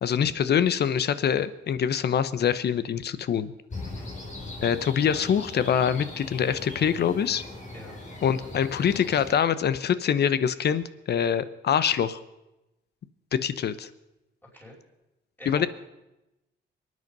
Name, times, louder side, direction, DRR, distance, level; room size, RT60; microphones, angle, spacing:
voice 1, 0.0-3.5 4.6-7.4 8.2-12.2 13.3-13.9 15.5-15.7, left 8 dB, 55° left, 15 dB, 0.9 m, -24 dB
sound 1, 3.7-9.3, left 2 dB, 40° left, 4.1 m, -40 dB
voice 2, 3.9-4.1 7.7-8.0 14.5-14.8 15.4-15.7, equal, 10° left, -5 dB, 5.4 m, -45 dB
23.5 x 9.6 x 5.4 m, 0.97 s
cardioid pair, 90°, 20 cm